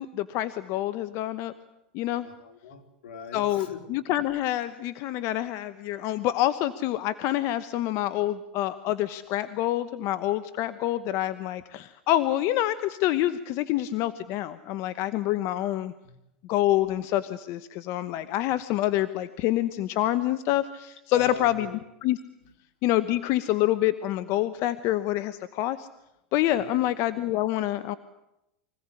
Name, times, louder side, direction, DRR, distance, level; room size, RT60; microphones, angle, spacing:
voice 1, 0.0-1.5 1.9-2.3 3.3-15.9 16.5-21.7 22.0-22.2 22.8-25.9 26.3-28.0, left 14 dB, 55° left, 14 dB, 1.1 m, -27 dB
voice 2, 2.2-3.8 16.0-16.1 21.1-21.8 22.4-22.5 26.5-26.9, left 6 dB, 80° left, 6 dB, 3.6 m, -42 dB
25.0 x 17.0 x 9.8 m, 0.86 s
supercardioid pair, 115°, 6 cm